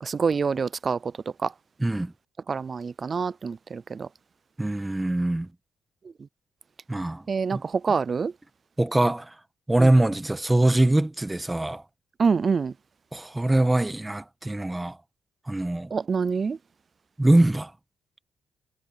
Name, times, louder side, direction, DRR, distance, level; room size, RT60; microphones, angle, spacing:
voice 1, 0.0-1.1 1.4-1.5 2.5-4.1 7.3-8.3 9.8-9.9 12.2-12.7 15.9-16.6, right 5 dB, 40° right, 0.4 m, -26 dB
voice 2, 1.8-2.1 4.6-5.5 6.9-7.2 7.5-7.6 8.8-9.3 9.7-11.8 13.1-15.0 15.5-15.9 17.2-17.7, right 1 dB, 10° right, 1.3 m, -23 dB
cardioid pair, 90°, 0 cm